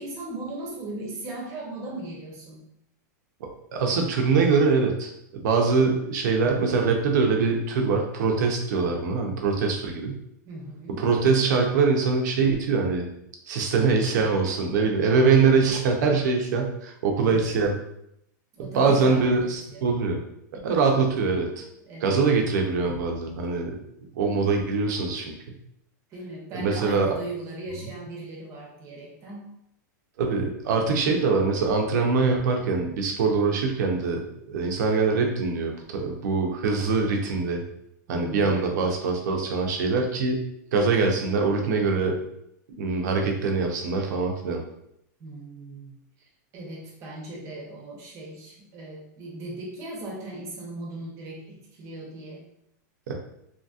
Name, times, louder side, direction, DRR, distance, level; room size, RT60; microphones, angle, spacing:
voice 1, 0.0-2.6 10.4-11.0 18.5-19.9 21.8-22.2 26.1-29.5 38.1-38.9 45.2-45.9 46.5-52.5, right 2 dB, 30° right, -2 dB, 0.8 m, -38 dB
voice 2, 3.7-10.2 11.0-13.1 13.5-17.7 18.6-20.2 20.6-21.6 22.0-23.8 24.2-25.3 26.5-27.2 30.2-37.6 38.1-40.4 40.7-42.2 42.8-44.6 53.1-53.2, right 4 dB, 65° right, 2 dB, 0.6 m, -23 dB
2.8 x 2.7 x 2.4 m, 0.77 s
supercardioid pair, 150°, 10 cm